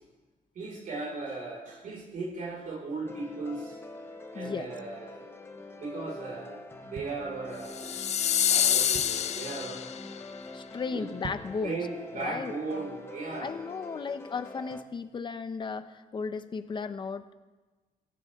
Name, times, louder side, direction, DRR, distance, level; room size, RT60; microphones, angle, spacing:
voice 1, 0.5-3.8 4.3-5.3 5.8-7.9 8.5-9.8 10.9-11.0 11.6-13.5, right 3 dB, 65° right, -3 dB, 5.5 m, -37 dB
sound 1, 3.0-14.8, left 2 dB, 15° left, 1.1 m, -45 dB
voice 2, 4.3-4.7 10.5-11.8 12.1-12.5 13.4-17.3, left 5 dB, 30° left, 10 dB, 0.9 m, -35 dB
sound 2, 6.9-7.9 8.4-8.5 8.7-9.4 9.9-10.1 10.4-10.5 11.1-11.7 12.1-12.2, right 6 dB, 50° right, 1.2 m, -44 dB
sound 3, 7.7-10.2, left 9 dB, 50° left, 0.4 m, -27 dB
25.5 x 14.5 x 3.7 m, 1.2 s
cardioid pair, 145°, 15 cm